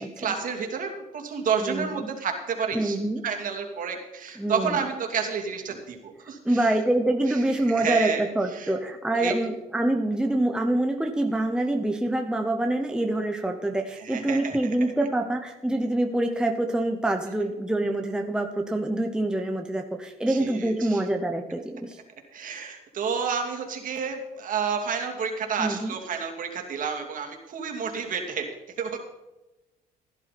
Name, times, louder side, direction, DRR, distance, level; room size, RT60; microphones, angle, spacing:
voice 1, 0.0-3.0 3.2-6.7 7.3-7.4 7.6-8.2 8.5-8.7 9.1-9.3 14.0-14.7 20.3-21.0 22.3-28.5 28.8-29.0, right 6 dB, 50° right, 3 dB, 2.7 m, -30 dB
voice 2, 1.6-2.1 2.7-3.2 4.4-4.8 6.2-22.0 25.6-25.9, right 1 dB, 5° right, 4 dB, 0.9 m, -26 dB
16.5 x 11.0 x 4.2 m, 1.0 s
cardioid pair, 110°, 17 cm